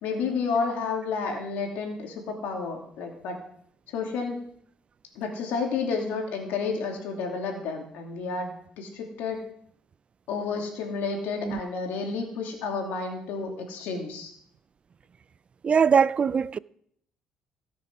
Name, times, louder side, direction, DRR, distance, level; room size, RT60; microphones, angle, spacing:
voice 1, 0.0-3.4 3.9-4.4 5.1-9.4 10.3-14.3, left 4 dB, 85° left, 2.8 m, -31 dB
voice 2, 15.6-16.6, right 6 dB, 40° right, 0.4 m, -21 dB
16.5 x 6.8 x 6.1 m
cardioid pair, 90°, 3 cm